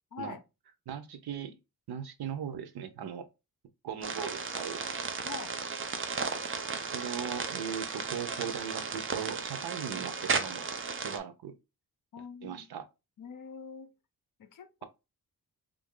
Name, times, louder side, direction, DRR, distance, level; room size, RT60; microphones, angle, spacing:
voice 1, 0.1-0.4 5.2-5.6 12.1-12.7 13.2-13.9 14.4-14.8, left 5 dB, 60° left, 0.6 m, -44 dB
voice 2, 0.9-1.6 1.9-3.3 3.8-4.8 6.9-10.7 11.0-11.6 12.4-12.9, right 8 dB, 85° right, 0.6 m, -38 dB
sound 1, 4.0-11.2, right 5 dB, 35° right, 0.4 m, -35 dB
3.1 x 2.6 x 3.6 m
wide cardioid pair, 175°, 37 cm